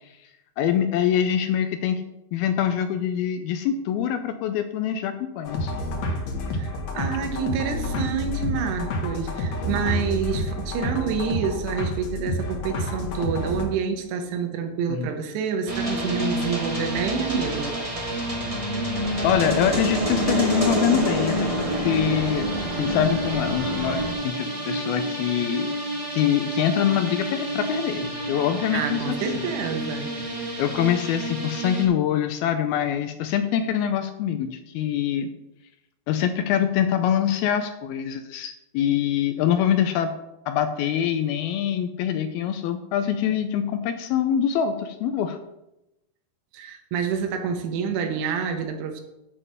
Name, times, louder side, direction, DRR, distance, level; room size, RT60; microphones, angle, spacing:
voice 1, 0.6-2.0 2.3-5.7 14.9-15.1 19.2-22.5 22.8-25.7 26.1-29.5 30.6-35.3 36.1-40.1 40.5-45.4, left 9 dB, 80° left, 8 dB, 2.3 m, -24 dB
sound 1, 5.4-13.6, left 1 dB, 60° left, 1.9 m, -29 dB
voice 2, 6.5-17.8 28.7-30.3 46.5-49.0, right 6 dB, 85° right, 5 dB, 3.2 m, -28 dB
sound 2, 15.7-31.8, right 1 dB, 45° right, 0.4 m, -28 dB
sound 3, 18.9-24.2, right 3 dB, 70° right, 2.6 m, -35 dB
8.2 x 5.5 x 7.4 m, 0.90 s
omnidirectional pair, 4.7 m